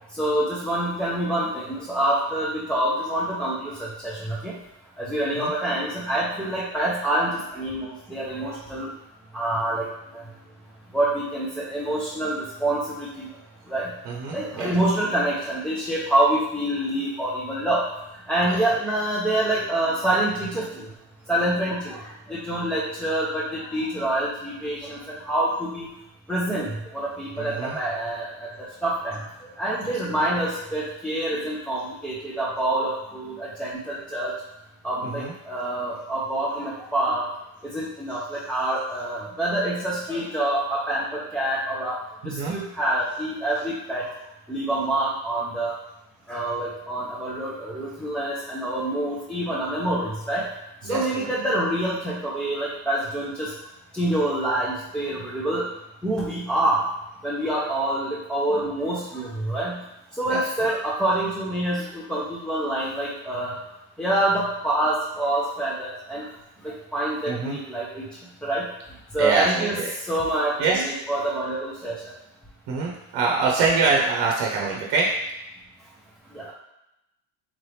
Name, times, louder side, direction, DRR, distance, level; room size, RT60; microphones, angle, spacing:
voice 1, 0.1-4.5 5.0-8.9 9.3-9.8 10.1-10.2 10.9-13.3 13.7-13.9 14.3-17.8 18.3-20.9 21.3-25.9 26.3-28.5 28.8-29.2 29.6-34.3 34.8-37.3 37.6-42.0 42.2-44.1 44.5-45.7 46.3-50.4 50.9-53.5 53.9-55.7 56.0-56.9 57.2-59.8 60.2-63.5 64.0-66.3 66.6-68.1 68.4-68.7 69.1-71.9 76.3-76.5, right 1 dB, ahead, -8 dB, 0.4 m, -26 dB
voice 2, 14.1-14.7 27.4-27.8 30.1-30.2 35.2-35.3 42.2-42.5 50.8-51.3 60.3-60.4 67.3-67.6 69.2-69.9 70.6-70.8 72.7-75.1, right 4 dB, 60° right, -2 dB, 0.8 m, -24 dB
3.7 x 3.2 x 3.2 m, 0.89 s
supercardioid pair, 115°, 48 cm